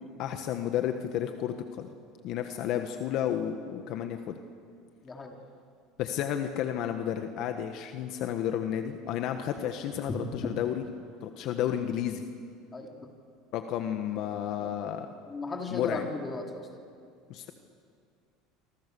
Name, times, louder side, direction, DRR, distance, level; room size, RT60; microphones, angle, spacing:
voice 1, 0.2-1.9 2.2-4.4 6.0-10.8 11.2-12.2 13.5-15.1 15.7-16.0 17.3-17.5, left 10 dB, 55° left, 6 dB, 1.4 m, -32 dB
voice 2, 5.0-5.3 10.1-10.2 12.7-13.0 14.6-14.7 15.3-16.7, left 3 dB, 20° left, 1 dB, 3.6 m, -36 dB
26.5 x 25.5 x 7.0 m, 2.3 s
supercardioid pair, 130°, 0 cm